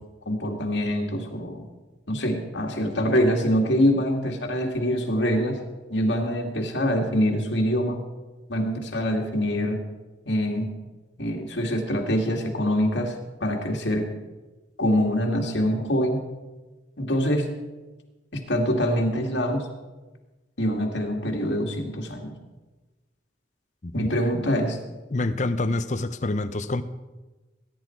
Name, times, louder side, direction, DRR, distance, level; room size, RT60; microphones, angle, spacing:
voice 1, 0.3-1.7 2.1-5.6 5.9-8.0 8.5-9.8 10.3-10.7 11.2-13.1 13.4-14.1 14.8-16.2 17.0-17.5 18.5-19.6 20.6-22.3 23.9-24.8, equal, 80° left, 1 dB, 2.3 m, -24 dB
voice 2, 25.1-26.8, left 2 dB, 40° left, 11 dB, 0.6 m, -27 dB
20.0 x 10.5 x 4.6 m, 1.2 s
head